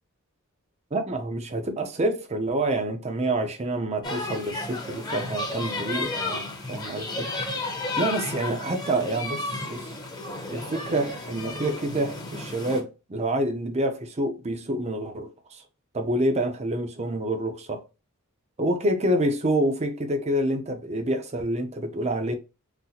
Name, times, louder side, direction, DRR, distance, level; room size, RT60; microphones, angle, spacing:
voice 1, 0.9-7.3 8.0-9.9 10.5-15.6 15.9-17.8 18.6-22.3, right 1 dB, 30° right, 0.6 m, -27 dB
sound 1, 4.0-12.8, left 2 dB, 20° left, 0.8 m, -33 dB
3.9 x 2.1 x 2.8 m
head